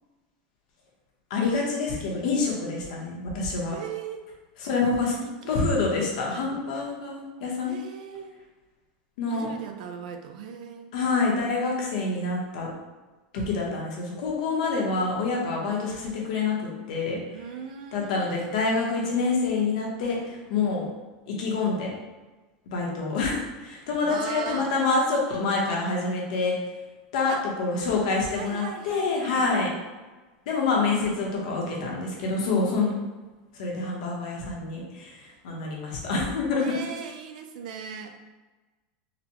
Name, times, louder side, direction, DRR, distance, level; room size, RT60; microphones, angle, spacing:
voice 1, 1.3-3.7 4.6-5.1 5.5-7.7 9.2-9.5 10.9-12.7 13.3-17.2 17.9-20.9 21.3-21.9 22.7-26.6 27.1-29.7 30.5-32.9 33.5-36.7, left 3 dB, 65° left, -2 dB, 0.9 m, -27 dB
voice 2, 3.7-4.2 5.1-5.7 7.6-8.4 9.3-10.9 17.3-18.3 24.0-24.7 27.3-27.4 28.3-29.5 36.6-38.1, right 7 dB, 85° right, 6 dB, 0.4 m, -38 dB
4.0 x 2.1 x 2.9 m, 1.2 s
supercardioid pair, 180°, 4 cm